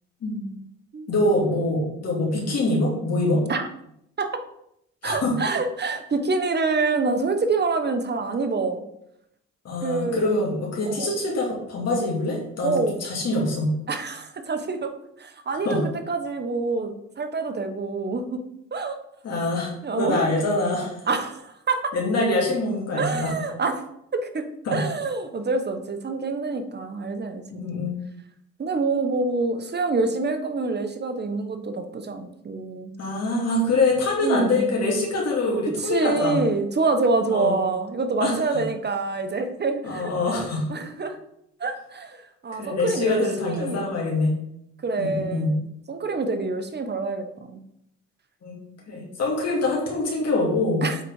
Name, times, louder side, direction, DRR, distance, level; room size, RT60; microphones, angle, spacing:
voice 1, 0.2-0.6 1.1-3.4 5.0-5.3 9.6-13.7 15.6-15.8 19.2-19.7 20.0-21.0 21.9-23.3 24.7-24.8 27.5-28.0 33.0-36.4 37.3-37.5 38.2-38.4 39.8-40.7 42.6-44.3 45.0-45.5 48.4-48.5 48.9-50.8, left 2 dB, 55° left, -3 dB, 2.5 m, -24 dB
voice 2, 5.0-8.8 9.8-10.3 10.8-11.1 12.6-13.0 13.9-14.9 15.2-15.8 16.1-18.4 18.7-19.0 19.8-20.3 21.1-21.9 23.0-23.8 24.1-27.7 28.6-33.0 34.2-34.8 35.8-40.1 40.7-41.2 41.6-43.9 44.8-45.6 45.9-47.6 50.8-51.0, right 3 dB, 35° right, 7 dB, 1.1 m, -26 dB
7.8 x 4.2 x 4.8 m, 0.76 s
cardioid pair, 90°, 30 cm